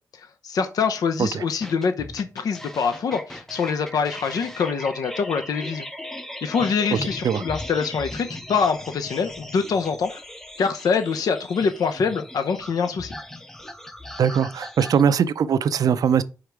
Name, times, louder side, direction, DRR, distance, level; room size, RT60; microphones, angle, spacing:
voice 1, 0.2-5.9 6.4-10.2 10.6-13.2, left 5 dB, 70° left, 0.7 m, -25 dB
sound 1, 1.6-15.0, left 1 dB, 5° left, 0.6 m, -38 dB
voice 2, 14.2-16.2, right 7 dB, 65° right, 0.5 m, -21 dB
5.0 x 5.0 x 4.6 m
cardioid pair, 105°, 7 cm